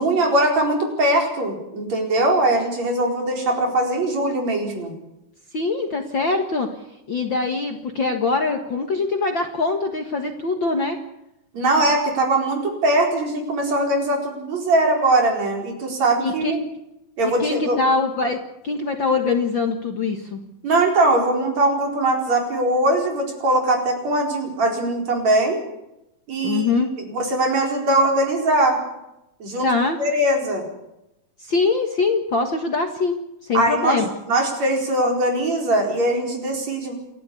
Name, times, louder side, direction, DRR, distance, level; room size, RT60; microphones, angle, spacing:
voice 1, 0.0-4.9 11.5-16.6 17.2-17.8 20.6-25.6 26.3-28.8 29.4-29.7 30.0-30.6 33.5-36.9, right 1 dB, 55° right, 2 dB, 5.6 m, -21 dB
voice 2, 5.5-6.7 7.1-11.0 16.2-16.7 17.2-20.4 26.4-26.9 29.6-30.0 31.4-34.0, left 3 dB, 45° left, 4 dB, 1.8 m, -23 dB
29.0 x 12.0 x 8.5 m, 0.88 s
omnidirectional pair, 3.8 m